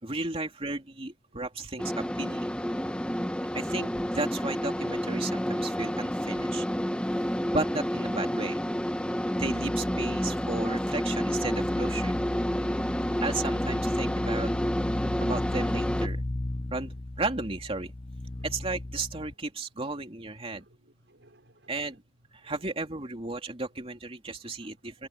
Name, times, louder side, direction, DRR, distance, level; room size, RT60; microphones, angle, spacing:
voice 1, 0.0-2.5 3.5-6.7 7.5-8.6 9.3-12.1 13.2-14.5 15.2-16.2 16.7-17.9 18.4-20.6 21.7-22.0 22.3-25.1, right 3 dB, 30° right, 2.9 m, -34 dB
sound 1, 1.8-16.1, equal, 5° left, 1.3 m, -29 dB
sound 2, 9.4-19.3, left 2 dB, 30° left, 0.7 m, -36 dB
voice 2, 20.6-21.8 22.4-22.6 24.4-25.1, right 1 dB, 70° right, 5.7 m, -62 dB
head